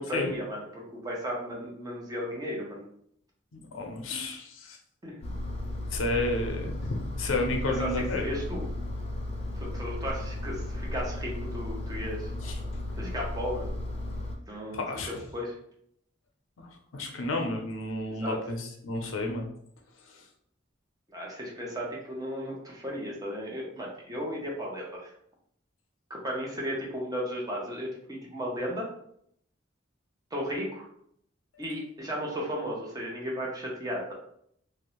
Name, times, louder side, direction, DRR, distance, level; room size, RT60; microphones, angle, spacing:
voice 1, 0.0-2.8 5.0-5.3 7.7-8.7 9.5-12.3 13.0-13.7 14.5-15.6 18.1-18.4 21.1-25.1 26.1-28.9 30.3-30.9 31.6-34.1, equal, 20° right, -2 dB, 0.6 m, -35 dB
voice 2, 3.5-4.8 5.9-8.3 12.4-12.6 14.7-15.1 16.6-19.5 20.1-20.2, left 2 dB, 85° left, 3 dB, 0.5 m, -32 dB
Engine, 5.2-14.4, left 1 dB, 30° left, 0.3 m, -35 dB
2.5 x 2.0 x 2.9 m, 0.69 s
head